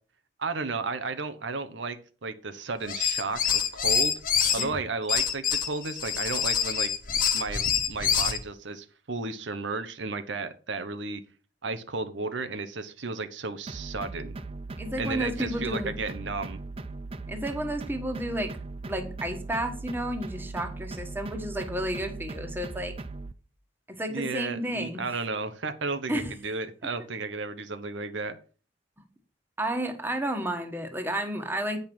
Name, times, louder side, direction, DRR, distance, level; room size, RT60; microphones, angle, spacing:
voice 1, 0.4-4.2 4.5-6.9 7.3-11.2 11.6-14.4 15.0-16.6 24.1-28.4, right 3 dB, 85° right, 10 dB, 1.0 m, -33 dB
sound 1, 2.8-4.6 5.1-8.4, left 7 dB, 50° left, 1.1 m, -26 dB
sound 2, 13.7-23.3, right 3 dB, 30° right, 0.5 m, -39 dB
voice 2, 14.8-15.9 17.3-18.6 18.8-22.9 23.9-25.0 26.1-26.3 29.6-31.8, right 1 dB, 10° right, 6 dB, 1.3 m, -31 dB
8.8 x 5.4 x 6.0 m, 0.38 s
head